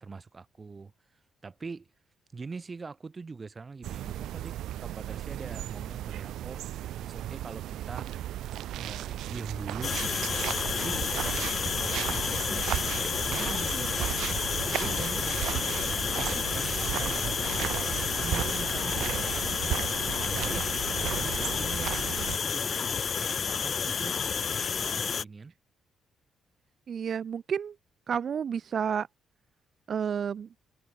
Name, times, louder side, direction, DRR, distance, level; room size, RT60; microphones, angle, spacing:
voice 1, 0.0-1.9 2.3-6.7 7.0-8.1 8.8-11.1 11.8-14.1 14.7-19.3 20.0-22.0 22.2-24.2 24.7-25.5, right 4 dB, 30° right, 4.2 m, -43 dB
sound 1, 3.8-22.4, right 13 dB, 80° right, 1.1 m, -35 dB
sound 2, 9.8-25.2, left 6 dB, 45° left, 0.7 m, -30 dB
voice 2, 26.9-27.7 28.1-29.1 29.9-30.5, right 7 dB, 50° right, 0.4 m, -30 dB
cardioid pair, 90°, 0 cm